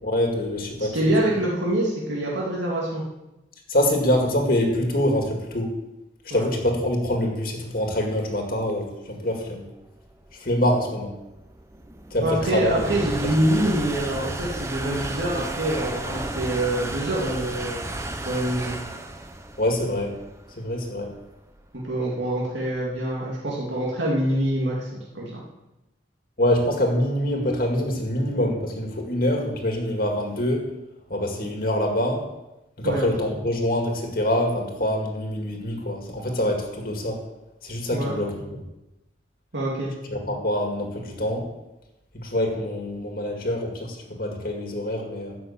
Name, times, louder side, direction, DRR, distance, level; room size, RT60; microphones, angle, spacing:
voice 1, 0.0-1.1 3.7-5.7 6.3-9.6 10.4-11.1 12.1-12.8 19.6-20.1 20.6-21.1 26.4-30.7 31.1-32.2 32.8-37.2 37.6-38.6 40.1-41.5 42.1-45.4, left 1 dB, 50° left, 2 dB, 2.0 m, -25 dB
voice 2, 0.8-3.0 6.3-6.4 12.2-17.9 18.2-18.8 21.9-25.4 32.8-33.0 37.9-38.1 39.5-39.9, right 1 dB, 85° right, -5 dB, 2.6 m, -25 dB
sound 1, 9.7-23.0, right 1 dB, 15° right, 0.8 m, -34 dB
13.0 x 6.1 x 8.5 m, 0.97 s
head